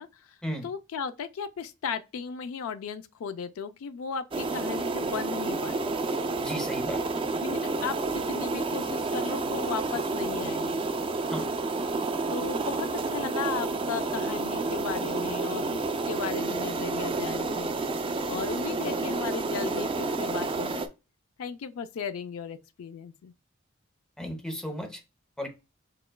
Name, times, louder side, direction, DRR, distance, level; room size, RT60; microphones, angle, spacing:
voice 1, 0.0-0.4 0.6-6.0 7.4-10.8 12.3-17.7 18.3-20.8 21.4-23.3, left 6 dB, 85° left, 0.4 m, -36 dB
sound 1, 4.3-20.9, right 3 dB, 25° right, 0.3 m, -30 dB
voice 2, 6.4-7.0 11.3-11.5 24.2-25.0 25.4-25.5, equal, 5° left, 0.7 m, -34 dB
6.4 x 2.3 x 2.2 m
head